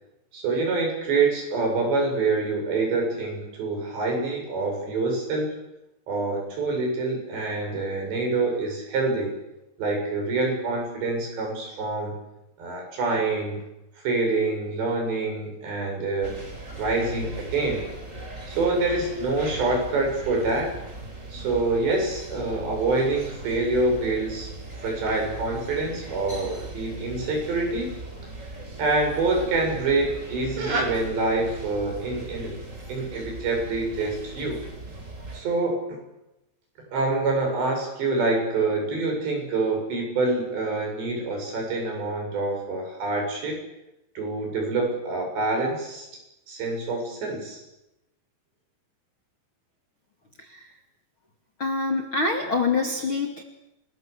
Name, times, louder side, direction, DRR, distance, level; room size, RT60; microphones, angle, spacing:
voice 1, 0.3-5.5 6.1-9.3 9.8-12.2 12.6-13.6 14.0-16.4 16.8-17.8 18.5-20.8 21.3-24.5 24.8-27.9 28.8-32.5 32.9-34.6 35.3-36.0 36.9-43.6 44.2-46.1 46.5-47.6, right 3 dB, 70° right, 2 dB, 9.6 m, -26 dB
sound 1, 16.2-35.4, right 2 dB, 15° right, 4.5 m, -39 dB
voice 2, 50.4-50.8 51.6-53.4, left 3 dB, 40° left, 2 dB, 2.3 m, -26 dB
29.0 x 21.0 x 8.4 m, 0.91 s
omnidirectional pair, 5.2 m